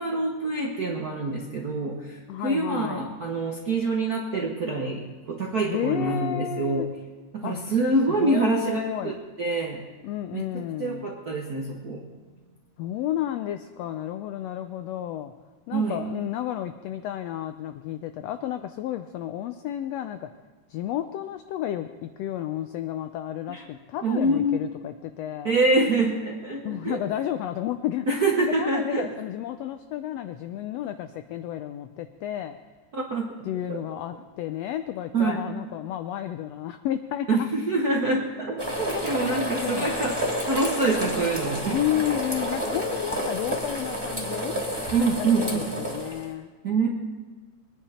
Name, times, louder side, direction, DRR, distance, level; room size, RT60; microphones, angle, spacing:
voice 1, 0.0-6.8 7.3-9.8 10.3-10.4 10.8-12.0 15.7-16.0 23.5-23.6 24.0-24.6 25.4-27.0 28.1-29.1 32.9-33.4 33.7-33.8 35.1-35.5 37.3-40.2 40.4-41.8 44.9-45.7 46.6-46.9, right 2 dB, 60° right, -1 dB, 0.9 m, -26 dB
voice 2, 2.3-3.1 5.6-6.9 7.4-7.6 8.2-9.2 10.0-11.1 12.8-15.3 15.7-20.3 20.7-25.6 26.6-28.1 28.4-32.6 33.4-37.5 38.9-39.9 41.7-44.6 45.1-46.5, left 12 dB, 85° left, 9 dB, 1.4 m, -32 dB
sound 1, 38.6-46.2, equal, 5° left, 2.4 m, -30 dB
21.5 x 10.0 x 4.3 m, 1.4 s
omnidirectional pair, 3.5 m